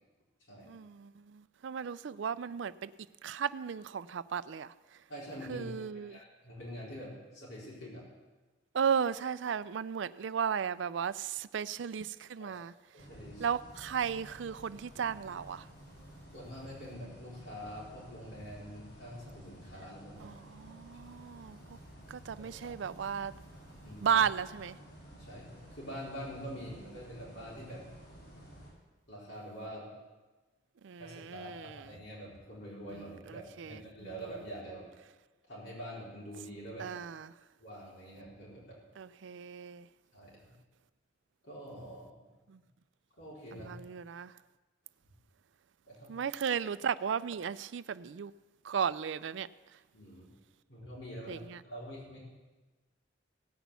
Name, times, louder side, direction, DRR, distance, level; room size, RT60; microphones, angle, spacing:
voice 1, 0.6-2.9 3.2-4.7 5.5-6.2 8.7-12.7 13.4-15.7 20.2-21.8 22.1-23.3 24.0-24.8 30.8-31.9 33.3-33.8 36.8-37.3 39.0-39.9 42.5-42.6 43.5-44.3 46.1-48.3 48.6-49.5 51.3-51.6, right 7 dB, 75° right, 16 dB, 0.4 m, -35 dB
voice 2, 5.1-8.0 12.4-12.6 12.9-13.5 16.3-20.3 20.7-20.8 22.4-22.5 23.8-24.2 25.0-27.8 29.1-29.9 31.0-34.8 35.5-36.9 37.6-38.8 40.1-40.5 41.4-42.1 43.2-43.8 45.9-46.1 49.9-50.3 50.7-52.2, equal, 80° left, -6 dB, 4.4 m, -45 dB
sound 1, 13.0-28.7, equal, 60° left, 4.9 m, -53 dB
17.0 x 6.1 x 8.2 m, 1.2 s
head